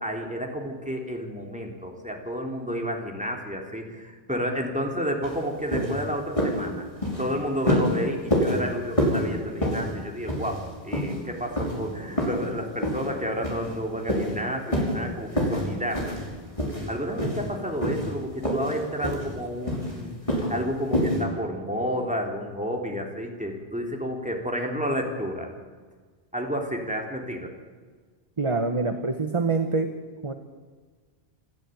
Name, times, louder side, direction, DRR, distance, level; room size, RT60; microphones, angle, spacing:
voice 1, 0.0-6.8 7.2-16.1 16.9-25.5 26.3-27.5, equal, 5° right, 1 dB, 3.5 m, -31 dB
sound 1, 5.2-5.4 5.7-6.0 6.4-6.6 7.0-7.3 7.7-7.9 8.3-8.6 9.0-9.2 9.6-9.9 10.3-10.6 10.9-11.2 11.6-11.7 12.2-12.4 12.8-13.1 13.4-13.7 14.1-14.3 14.7-15.0 15.3-15.7 15.9-16.3 16.6-16.9 17.2-17.5 17.8-18.1 18.4-18.8 19.0-19.3 19.7-19.9 20.3-20.5 20.9-21.2, equal, 30° left, 5.4 m, -26 dB
voice 2, 28.4-29.9 30.2-30.3, right 3 dB, 30° right, 7 dB, 1.2 m, -25 dB
27.5 x 12.5 x 9.2 m, 1.5 s
omnidirectional pair, 1.1 m